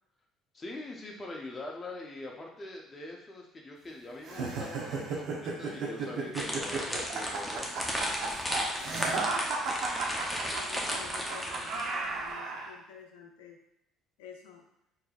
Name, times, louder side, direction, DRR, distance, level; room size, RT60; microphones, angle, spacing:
voice 1, 0.5-7.7, left 2 dB, 30° left, -1 dB, 1.0 m, -43 dB
sound 1, 4.2-12.7, right 3 dB, 70° right, 0.8 m, -34 dB
sound 2, 6.3-12.0, equal, ahead, 0.8 m, -34 dB
voice 2, 8.7-9.5 10.5-13.6 14.2-14.6, left 7 dB, 90° left, 2 dB, 0.5 m, -50 dB
4.5 x 2.9 x 2.4 m, 0.80 s
supercardioid pair, 80°, 0 cm